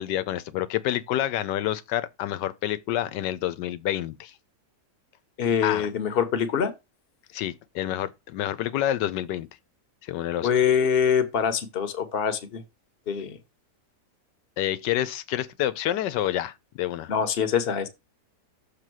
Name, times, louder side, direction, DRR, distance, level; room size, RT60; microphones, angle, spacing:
voice 1, 0.0-4.3 5.6-5.9 7.3-9.5 10.0-10.5 14.6-17.1, left 12 dB, 85° left, 1.3 m, -28 dB
voice 2, 5.4-6.7 10.4-12.6 13.1-13.4 17.1-17.9, left 7 dB, 40° left, 1.1 m, -24 dB
6.7 x 3.4 x 6.1 m
omnidirectional pair, 1.8 m